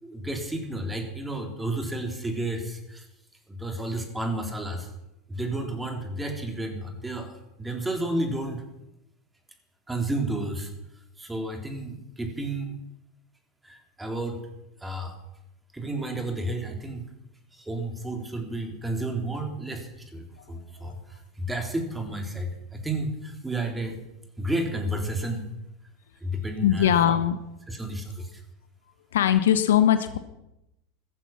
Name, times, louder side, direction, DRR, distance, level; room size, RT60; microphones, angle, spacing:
voice 1, 0.0-3.1 3.5-4.9 5.3-8.6 9.9-10.7 11.2-12.7 13.6-14.5 14.8-15.2 15.7-17.0 17.5-24.0 24.4-25.5 26.2-27.2 27.7-28.4, right 1 dB, 10° right, 4 dB, 3.5 m, -31 dB
voice 2, 26.6-27.4 29.1-30.2, left 10 dB, 70° left, 11 dB, 1.1 m, -20 dB
15.5 x 14.5 x 6.0 m, 0.87 s
figure-of-eight pair, 85°, 0 cm